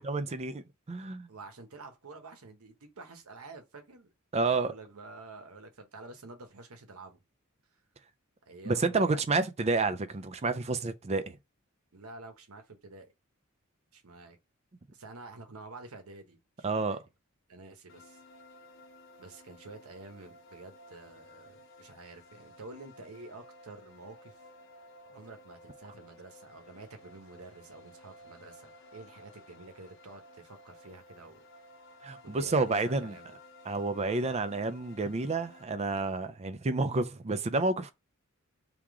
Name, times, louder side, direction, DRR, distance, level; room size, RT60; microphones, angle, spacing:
voice 1, 0.0-1.3 4.3-4.7 8.7-11.4 16.6-17.0 32.0-33.2 33.7-37.9, right 3 dB, 30° right, 0.5 m, -30 dB
voice 2, 1.3-7.2 8.5-9.3 11.9-13.1 13.9-14.4 14.9-17.0 17.5-18.2 19.2-24.3 25.1-31.4 32.2-33.4, right 3 dB, 85° right, 1.1 m, -49 dB
sound 1, 17.9-35.6, left 1 dB, 60° left, 0.9 m, -55 dB
3.7 x 2.9 x 4.8 m
head